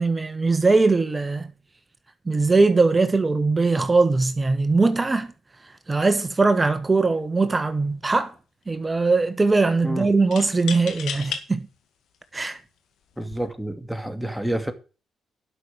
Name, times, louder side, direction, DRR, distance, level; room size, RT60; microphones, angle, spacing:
voice 1, 0.0-1.5 2.3-5.3 5.9-8.3 8.7-11.7 12.3-12.6, right 3 dB, 25° right, 1.5 m, -20 dB
sound 1, 7.2-7.4 7.7-8.4 10.3-11.4 12.1-12.2 13.1-13.5, left 7 dB, 75° left, 2.0 m, -34 dB
voice 2, 13.2-14.7, right 1 dB, 5° right, 2.4 m, -28 dB
11.5 x 6.2 x 7.4 m
supercardioid pair, 55°, 0 cm